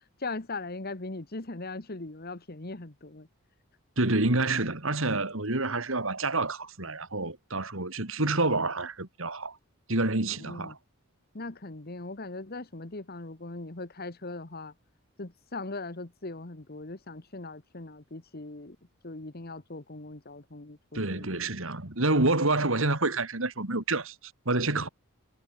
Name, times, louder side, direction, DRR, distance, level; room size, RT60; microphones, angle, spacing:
voice 1, 0.2-3.3 10.4-10.8 11.3-14.7 15.2-18.8 19.0-21.5, left 2 dB, 45° left, 1.4 m, -40 dB
voice 2, 4.0-9.6 9.9-10.8 20.9-24.2 24.4-24.9, right 2 dB, 60° right, 2.8 m, -28 dB
head